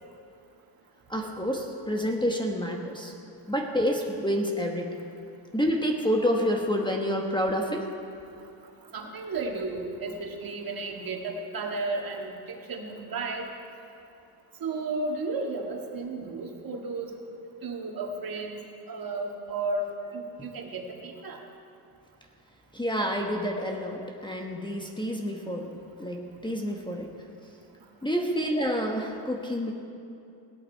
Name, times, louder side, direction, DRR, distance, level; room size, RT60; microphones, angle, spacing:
voice 1, 1.1-3.1 3.5-5.0 5.5-7.9 20.0-20.2 22.7-25.7 26.0-27.1 28.0-29.7, equal, 10° left, 1 dB, 1.2 m, -28 dB
voice 2, 8.9-13.5 14.6-17.1 17.6-18.6 18.9-19.8 20.1-21.4, right 3 dB, 45° right, 1 dB, 2.0 m, -33 dB
17.0 x 11.0 x 4.6 m, 2.6 s
cardioid pair, 90°, 48 cm